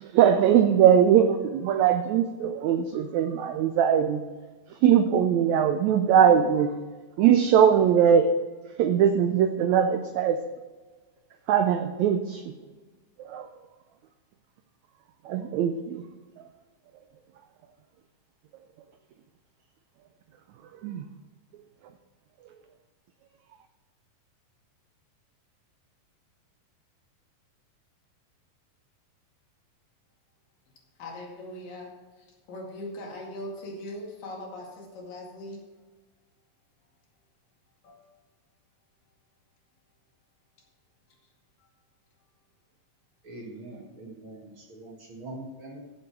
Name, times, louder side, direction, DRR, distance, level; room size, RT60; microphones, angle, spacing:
voice 1, 0.0-4.2 4.7-6.7 7.2-8.3 8.8-10.4 11.5-12.4 13.2-13.5 15.3-16.0 20.8-21.0, right 8 dB, 85° right, 8 dB, 1.6 m, -21 dB
voice 2, 31.0-35.6 37.8-38.0, left 1 dB, 75° left, -1 dB, 3.8 m, -40 dB
voice 3, 43.2-45.8, right 2 dB, 45° right, -1 dB, 2.0 m, -43 dB
14.5 x 6.8 x 4.6 m, 1.3 s
omnidirectional pair, 3.9 m